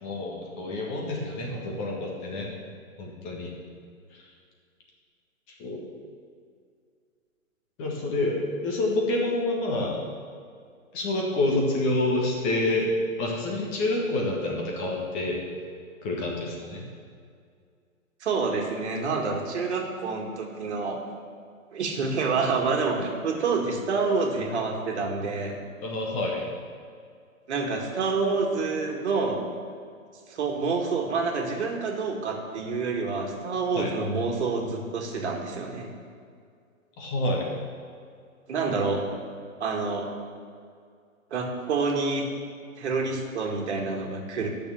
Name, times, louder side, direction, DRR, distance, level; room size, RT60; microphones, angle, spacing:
voice 1, 0.0-2.5 3.0-3.5 5.6-5.8 7.8-10.0 10.9-12.9 13.2-15.4 16.0-16.9 25.8-26.5 33.7-33.9 37.0-37.5, left 2 dB, 25° left, -1 dB, 1.6 m, -28 dB
voice 2, 18.2-21.0 21.7-25.6 27.5-29.4 30.3-35.9 38.5-39.0 39.6-40.1 41.3-42.3 42.8-44.5, right 4 dB, 50° right, 2 dB, 2.0 m, -27 dB
10.5 x 6.6 x 7.1 m, 2.2 s
hypercardioid pair, 140°, 42 cm